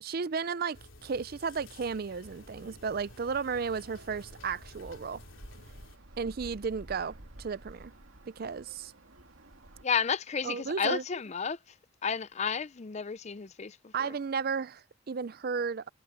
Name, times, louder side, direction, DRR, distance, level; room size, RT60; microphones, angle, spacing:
voice 1, 0.0-5.2 6.2-7.9 8.3-8.9 10.4-11.0 13.9-15.9, right 5 dB, 45° right, 0.4 m, -34 dB
sound 1, 0.7-6.0, left 2 dB, 70° left, 3.5 m, -53 dB
sound 2, 2.2-9.8, right 1 dB, 80° right, 2.5 m, -52 dB
voice 2, 9.8-11.6 12.0-13.9, left 6 dB, 35° left, 0.5 m, -32 dB
head